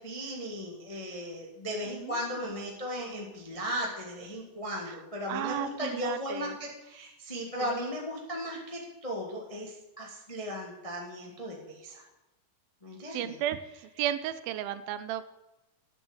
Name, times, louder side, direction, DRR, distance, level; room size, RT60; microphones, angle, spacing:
voice 1, 0.0-12.0 12.8-13.3, equal, 25° left, -1 dB, 0.7 m, -36 dB
voice 2, 5.3-6.6 7.6-7.7 13.1-13.6 14.0-15.3, right 11 dB, 80° right, 12 dB, 2.3 m, -33 dB
10.0 x 7.1 x 8.0 m, 0.98 s
omnidirectional pair, 4.3 m